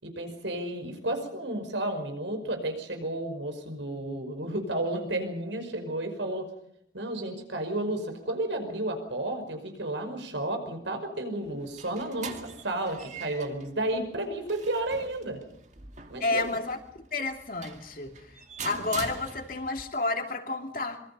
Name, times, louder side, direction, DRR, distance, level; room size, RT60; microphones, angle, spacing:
voice 1, 0.0-6.5 6.9-15.4 16.1-16.5, right 1 dB, 85° right, 5.5 m, -32 dB
sound 1, 11.4-19.8, right 5 dB, 40° right, 2.2 m, -44 dB
voice 2, 16.2-16.8 17.1-21.0, left 3 dB, 50° left, 2.9 m, -31 dB
26.0 x 24.0 x 5.6 m
head